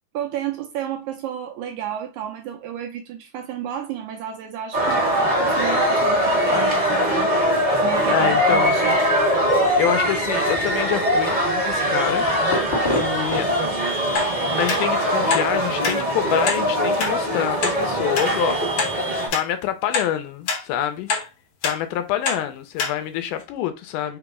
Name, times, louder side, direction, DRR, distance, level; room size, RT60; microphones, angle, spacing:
voice 1, 0.1-7.3 7.8-9.0, right 10 dB, 80° right, 1.8 m, -32 dB
sound 1, 4.7-19.3, equal, 25° right, 0.9 m, -21 dB
voice 2, 8.1-8.8 9.8-12.3 13.0-13.5 14.5-18.6 19.3-21.1 21.6-24.2, left 11 dB, 80° left, 2.0 m, -26 dB
sound 2, 8.3-13.8, left 1 dB, 25° left, 1.0 m, -33 dB
sound 3, 14.2-14.3 14.7-14.8 15.3-15.5 15.8-16.0 16.5-16.6 17.0-17.1 17.6-17.8 18.2-18.3 18.8-18.9 19.3-19.5 19.9-20.1 20.5-20.6 21.1-21.3 21.6-21.8 22.3-22.4 22.8-22.9 23.4-23.5, left 5 dB, 65° left, 1.5 m, -24 dB
5.2 x 2.0 x 4.7 m
omnidirectional pair, 3.8 m